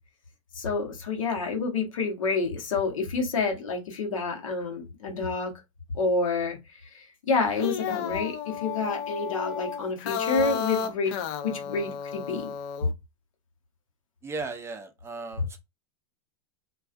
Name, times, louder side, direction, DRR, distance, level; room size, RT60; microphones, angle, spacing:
voice 1, 0.5-5.5 5.9-6.6 6.9-11.1 11.4-12.5 12.8-12.9 15.4-15.5, left 4 dB, 90° left, 0.8 m, -28 dB
sound 1, 7.4-12.9, left 7 dB, 55° left, 0.4 m, -33 dB
voice 2, 14.2-15.6, right 3 dB, 15° right, 0.3 m, -36 dB
2.3 x 2.2 x 2.4 m
hypercardioid pair, 115°, 17 cm